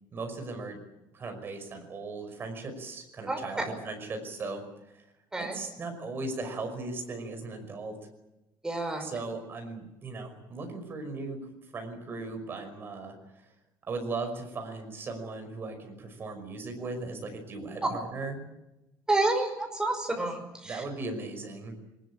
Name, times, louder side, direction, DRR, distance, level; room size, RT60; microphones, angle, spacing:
voice 1, 0.1-0.8 1.1-4.6 4.9-5.0 5.4-8.0 9.0-11.4 11.7-13.2 13.9-18.4 20.6-21.7, right 3 dB, 30° right, 5 dB, 5.6 m, -37 dB
voice 2, 8.6-9.1 19.1-20.8, right 2 dB, 10° right, 4 dB, 5.3 m, -29 dB
23.0 x 20.0 x 8.9 m, 0.94 s
cardioid pair, 165°, 8 cm